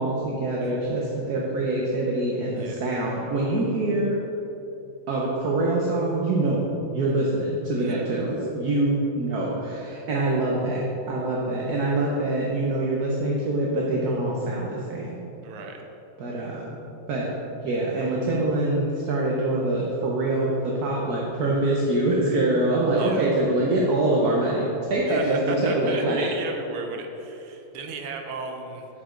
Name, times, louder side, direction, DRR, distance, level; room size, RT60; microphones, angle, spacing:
voice 1, 0.0-4.2 5.1-6.6 6.9-10.8 11.1-15.2 16.2-16.8 17.1-17.3 17.6-26.3, right 2 dB, 60° right, -3 dB, 1.1 m, -24 dB
voice 2, 0.6-1.0 2.6-2.8 7.8-8.3 15.4-15.9 23.0-23.3 25.1-28.9, right 4 dB, 85° right, 3 dB, 1.6 m, -35 dB
8.0 x 6.1 x 3.7 m, 3.0 s
omnidirectional pair, 2.3 m